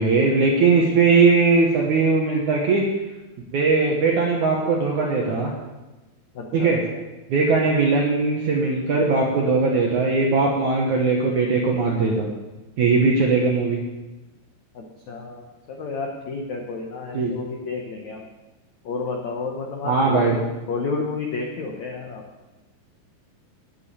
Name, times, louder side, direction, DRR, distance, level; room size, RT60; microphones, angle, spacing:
voice 1, 0.0-2.8 3.5-5.5 6.5-6.8 7.3-12.3 12.8-13.8 17.1-17.3 19.8-20.4, right 4 dB, 70° right, -1 dB, 1.9 m, -19 dB
voice 2, 6.3-7.0 14.7-18.2 18.8-22.2, left 4 dB, 85° left, 1 dB, 1.6 m, -31 dB
9.3 x 8.3 x 8.9 m, 1.1 s
omnidirectional pair, 5.3 m